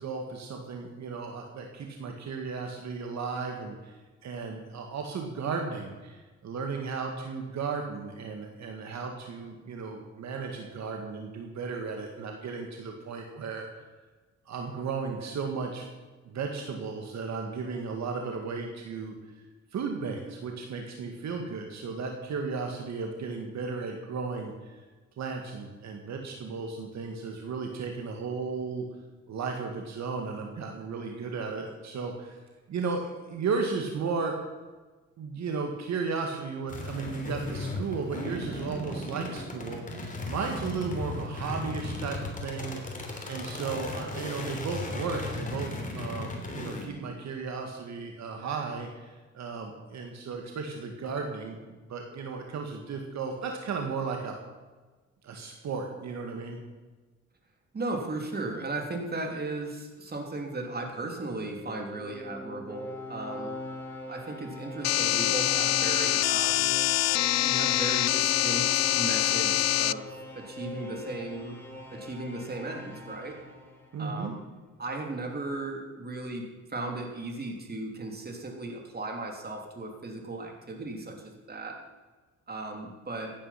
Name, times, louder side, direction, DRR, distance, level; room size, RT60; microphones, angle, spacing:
voice 1, 0.0-3.9 4.2-13.8 14.5-15.9 16.3-19.1 19.7-24.8 25.2-28.9 29.3-32.4 32.7-34.4 35.2-51.6 51.9-54.3 55.2-56.6 73.9-74.4, right 5 dB, 65° right, 3 dB, 2.0 m, -35 dB
sound 1, 36.7-46.9, left 2 dB, 25° left, 3.1 m, -36 dB
voice 2, 57.7-63.5 64.1-66.7 67.4-70.1 70.3-71.6 71.9-73.4 74.0-74.4 74.8-81.8 82.5-83.3, right 2 dB, 30° right, 2 dB, 3.1 m, -36 dB
sound 2, 61.2-74.2, left 1 dB, 5° left, 3.4 m, -42 dB
sound 3, 64.8-69.9, left 15 dB, 60° left, 0.4 m, -25 dB
15.5 x 9.8 x 5.9 m, 1.3 s
cardioid pair, 90°, 30 cm